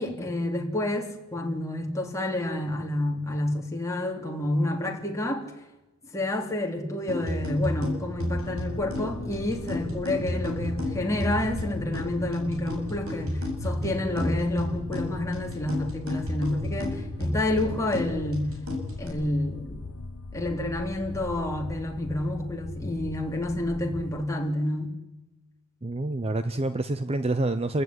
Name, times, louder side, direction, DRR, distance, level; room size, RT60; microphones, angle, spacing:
voice 1, 0.0-5.5 6.1-18.5 19.0-19.8 20.3-24.9, left 1 dB, 15° left, 3.5 m, -29 dB
sound 1, 7.1-19.1, left 1 dB, 70° right, 7.3 m, -33 dB
sound 2, 8.1-24.4, left 3 dB, 75° left, 1.0 m, -39 dB
voice 2, 25.8-27.8, right 2 dB, 30° right, 0.8 m, -27 dB
29.0 x 15.0 x 9.7 m
head